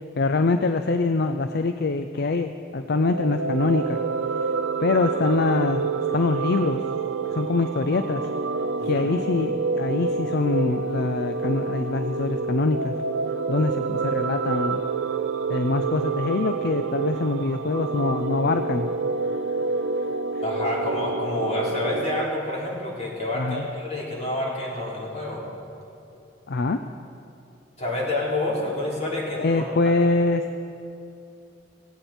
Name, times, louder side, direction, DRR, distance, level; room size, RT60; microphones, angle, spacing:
voice 1, 0.2-4.0 4.8-6.8 7.3-8.2 8.8-12.9 13.5-14.8 15.5-18.9 23.3-23.7 26.5-26.8 29.4-30.4, left 3 dB, 60° left, 8 dB, 0.5 m, -24 dB
sound 1, 2.9-22.2, right 4 dB, 80° right, 0.7 m, -28 dB
voice 2, 8.8-9.1 20.4-25.4 27.8-29.7, left 1 dB, 40° left, -5 dB, 3.9 m, -28 dB
17.0 x 16.5 x 4.4 m, 2.8 s
head